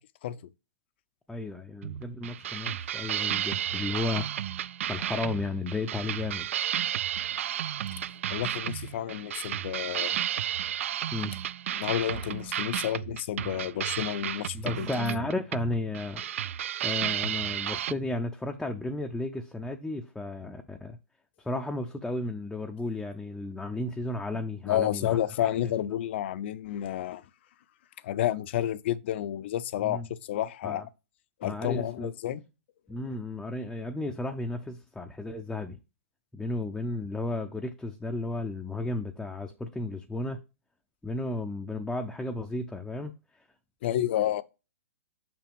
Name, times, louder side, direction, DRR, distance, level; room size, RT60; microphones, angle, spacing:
voice 1, 1.3-4.3 4.9-6.5 11.1-11.3 14.5-16.2 16.8-21.0 21.4-25.7 29.8-30.1 30.6-30.8 31.4-32.1 32.9-35.8 36.3-40.4 41.0-43.1, left 2 dB, 5° left, 0.5 m, -33 dB
sound 1, 1.8-17.9, right 10 dB, 65° right, 0.3 m, -33 dB
voice 2, 8.3-10.2 11.7-15.2 24.6-27.2 28.0-30.0 30.3-30.9 31.4-32.4 43.8-44.4, left 11 dB, 50° left, 0.5 m, -30 dB
6.4 x 5.8 x 3.5 m
hypercardioid pair, 140°, 7 cm